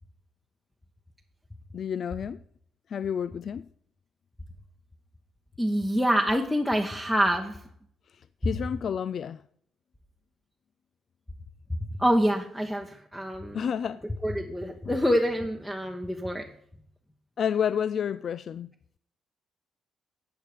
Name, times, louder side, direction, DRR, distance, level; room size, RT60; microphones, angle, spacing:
voice 1, 1.7-2.4 2.9-3.7 8.1-9.4 13.5-14.0 14.8-15.0 17.4-18.7, left 8 dB, 55° left, 0.3 m, -30 dB
voice 2, 5.6-7.6 12.0-13.6 14.2-16.5, equal, 5° left, 1.0 m, -26 dB
11.5 x 8.0 x 5.0 m
cardioid pair, 90°, 0 cm